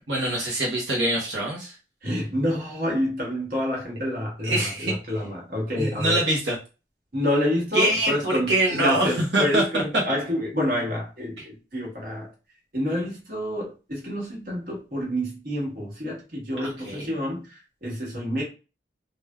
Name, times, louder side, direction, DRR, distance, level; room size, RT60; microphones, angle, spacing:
voice 1, 0.1-1.8 4.4-4.9 5.8-6.6 7.7-9.6 16.6-17.1, right 1 dB, 85° right, 0.9 m, -24 dB
voice 2, 2.0-6.2 7.1-12.3 12.7-18.4, left 1 dB, 50° right, 1.3 m, -28 dB
3.4 x 2.4 x 2.3 m
head